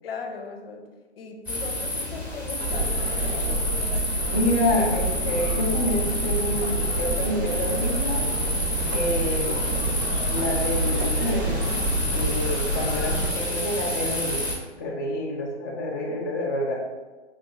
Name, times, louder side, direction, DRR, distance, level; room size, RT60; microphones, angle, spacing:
voice 1, 0.0-0.9 1.2-4.5, left 4 dB, 55° left, 4 dB, 0.7 m, -38 dB
sound 1, 1.5-14.6, left 1 dB, 5° right, 1.0 m, -29 dB
sound 2, 2.6-13.3, right 2 dB, 55° right, 0.8 m, -28 dB
voice 2, 4.3-8.3 8.9-9.9 10.3-11.6 12.1-14.5 14.8-16.8, left 1 dB, 20° left, -5 dB, 0.3 m, -28 dB
4.7 x 3.8 x 2.3 m, 1.2 s
figure-of-eight pair, 125°, 35 cm